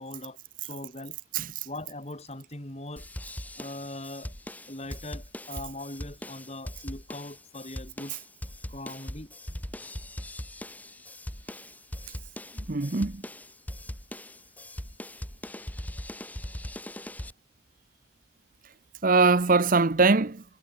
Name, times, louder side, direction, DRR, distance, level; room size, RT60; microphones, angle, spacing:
voice 1, 0.0-1.2 1.6-3.1 3.6-4.3 4.7-8.2 8.7-9.3, left 1 dB, 30° left, 3.1 m, -40 dB
voice 2, 1.3-1.7 12.7-13.2 19.0-20.4, right 3 dB, 40° right, 0.8 m, -22 dB
sound 1, 3.0-17.3, left 1 dB, 10° left, 1.2 m, -40 dB
head